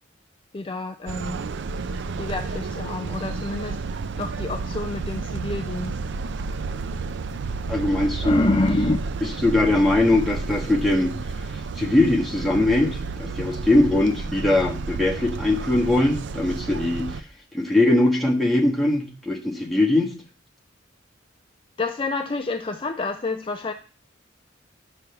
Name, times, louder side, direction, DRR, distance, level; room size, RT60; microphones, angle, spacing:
voice 1, 0.5-1.4 2.2-6.0 8.2-9.0 21.8-23.7, left 2 dB, 25° left, 6 dB, 0.4 m, -27 dB
sound 1, 1.1-17.2, right 4 dB, 65° right, 0.4 m, -31 dB
voice 2, 7.7-8.5 9.4-11.1 11.8-17.1 17.5-20.1, left 2 dB, ahead, -2 dB, 1.4 m, -21 dB
9.5 x 3.3 x 6.8 m, 0.37 s
head